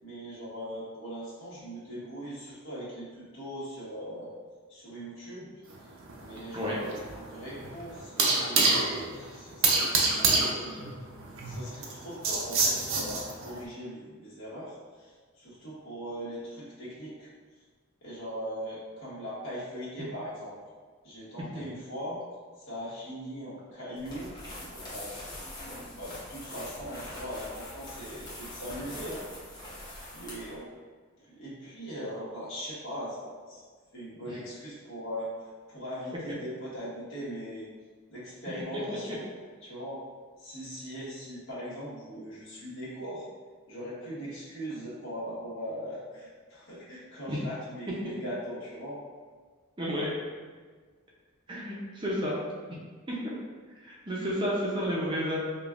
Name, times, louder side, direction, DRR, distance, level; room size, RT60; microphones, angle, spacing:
voice 1, 0.0-4.3 4.7-5.6 6.2-9.9 10.2-10.8 11.4-17.3 18.0-20.5 21.0-22.2 22.6-25.4 26.0-29.3 30.1-30.7 31.2-33.6 33.9-35.3 35.7-37.7 38.1-39.2 39.6-40.0 40.4-43.3 43.7-49.0, equal, 75° left, -9 dB, 1.3 m, -40 dB
sound 1, 5.7-13.6, right 3 dB, 75° right, 0.5 m, -28 dB
sound 2, 24.0-30.6, left 1 dB, 20° left, 0.8 m, -43 dB
voice 2, 49.8-50.1 51.5-52.4 52.7-52.8 53.1-53.2 53.8-55.4, equal, 25° right, -5 dB, 0.5 m, -31 dB
5.0 x 2.3 x 2.4 m, 1.5 s
head